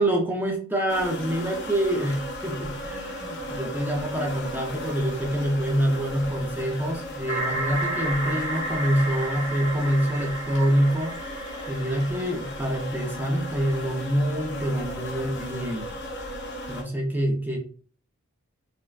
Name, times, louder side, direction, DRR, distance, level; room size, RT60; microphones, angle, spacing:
voice 1, 0.0-11.2 11.7-15.9 16.7-17.6, right 1 dB, 10° right, 1 dB, 0.5 m, -26 dB
sound 1, 0.9-16.8, left 1 dB, 55° left, 0.7 m, -36 dB
sound 2, 7.3-13.0, right 1 dB, 10° left, 1.2 m, -32 dB
3.2 x 2.1 x 2.4 m, 0.44 s
head